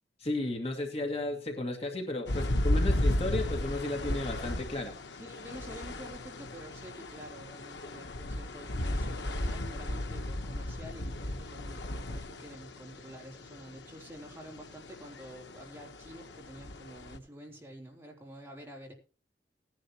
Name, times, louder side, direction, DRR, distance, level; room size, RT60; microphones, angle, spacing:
voice 1, 0.2-5.2, left 2 dB, 35° left, 3 dB, 2.1 m, -34 dB
sound 1, 2.3-17.2, left 1 dB, 85° left, 1.1 m, -35 dB
voice 2, 5.2-18.9, equal, 15° right, 0 dB, 3.4 m, -48 dB
18.5 x 10.5 x 3.0 m, 0.34 s
head